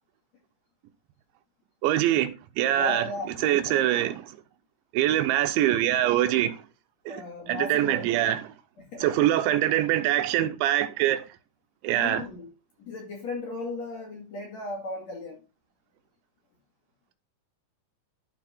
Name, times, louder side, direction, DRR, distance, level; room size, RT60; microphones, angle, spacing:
voice 1, 1.8-3.1 3.4-4.3 4.9-6.6 7.1-8.5 9.0-11.2 11.8-12.2, right 12 dB, 80° right, 3.1 m, -24 dB
voice 2, 2.7-3.8 7.1-8.2 8.8-9.1 11.9-12.5 12.8-15.4, left 2 dB, 45° left, 2.7 m, -36 dB
12.0 x 4.7 x 4.4 m
omnidirectional pair, 5.3 m